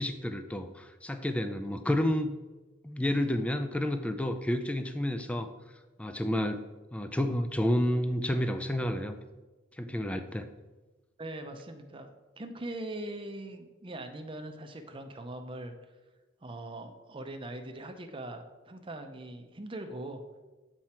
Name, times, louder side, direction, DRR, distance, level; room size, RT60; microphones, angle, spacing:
voice 1, 0.0-2.3 2.8-5.5 6.0-6.7 6.9-9.2 9.8-10.5, left 1 dB, 5° left, 8 dB, 0.3 m, -30 dB
voice 2, 11.2-12.1 12.4-15.7 16.4-20.2, right 1 dB, 25° right, 6 dB, 0.6 m, -41 dB
7.6 x 4.5 x 4.3 m, 1.2 s
head